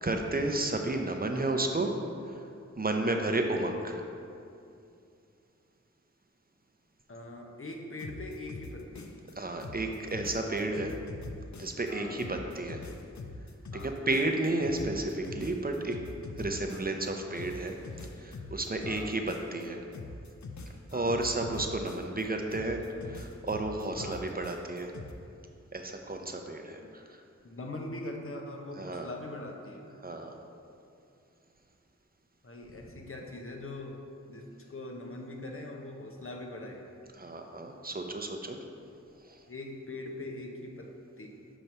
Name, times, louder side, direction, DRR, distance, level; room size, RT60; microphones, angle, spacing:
voice 1, 0.0-1.9 2.2-2.5 2.8-4.0 9.4-11.0 11.6-12.8 13.8-16.0 16.4-17.8 18.2-19.8 20.9-24.9 25.7-27.2 28.8-29.1 30.0-30.4 37.2-38.6 39.2-39.4, right 2 dB, 30° right, 3 dB, 0.6 m, -32 dB
voice 2, 7.1-9.2 11.9-12.2 13.7-13.9 16.7-16.8 18.8-19.2 20.9-21.1 24.0-24.2 26.8-26.9 27.4-29.8 32.4-34.0 34.3-36.8 38.6-38.7 39.5-41.4, left 2 dB, 50° left, 1 dB, 0.8 m, -42 dB
sound 1, 8.0-9.3 9.6-11.9 12.2-17.1 17.3-19.7 19.9-22.2 22.5-25.1, left 3 dB, 75° left, 0.5 m, -43 dB
6.6 x 3.0 x 5.5 m, 2.6 s
wide cardioid pair, 45°, 29 cm